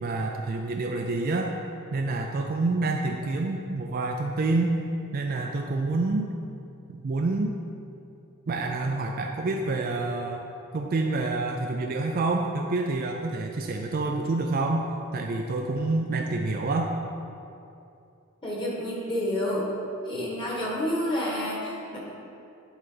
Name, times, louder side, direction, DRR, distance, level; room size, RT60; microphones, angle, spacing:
voice 1, 0.0-1.5 1.9-4.7 5.1-6.3 6.9-7.6 8.5-10.4 10.7-14.9 15.1-16.9, right 3 dB, 45° right, 2 dB, 0.4 m, -27 dB
voice 2, 18.4-19.6 20.0-22.0, left 1 dB, 25° left, -5 dB, 1.6 m, -29 dB
10.5 x 3.9 x 3.9 m, 2.6 s
head